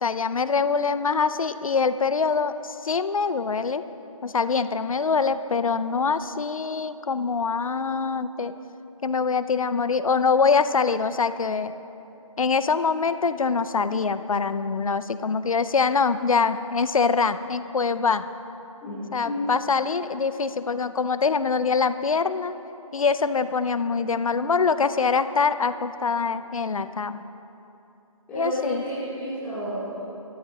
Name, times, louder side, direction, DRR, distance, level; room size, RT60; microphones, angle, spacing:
voice 1, 0.0-3.8 4.2-8.6 9.0-11.7 12.4-18.2 19.1-22.5 22.9-27.3 28.4-28.8, left 5 dB, 70° left, 13 dB, 0.6 m, -24 dB
voice 2, 18.8-19.5 28.3-30.0, equal, 10° left, -16 dB, 3.0 m, -31 dB
21.5 x 13.5 x 3.0 m, 2.9 s
figure-of-eight pair, 165°, 18 cm